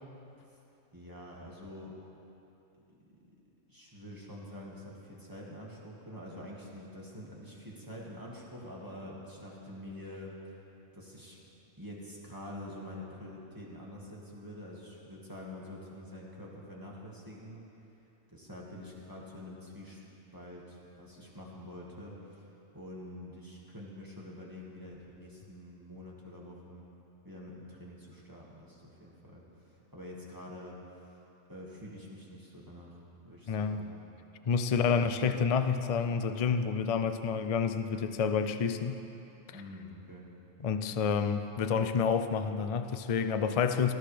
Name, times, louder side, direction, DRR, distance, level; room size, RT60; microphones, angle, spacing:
voice 1, 0.9-1.9 3.7-10.4 10.9-11.4 11.8-17.6 18.3-20.0 20.3-26.9 27.2-31.2 31.5-34.0 39.5-40.3, left 1 dB, 15° right, -5 dB, 1.9 m, -46 dB
voice 2, 33.5-33.9 34.5-39.0 40.6-43.9, left 6 dB, 60° left, 9 dB, 0.3 m, -29 dB
18.5 x 13.5 x 3.4 m, 2.9 s
omnidirectional pair, 1.4 m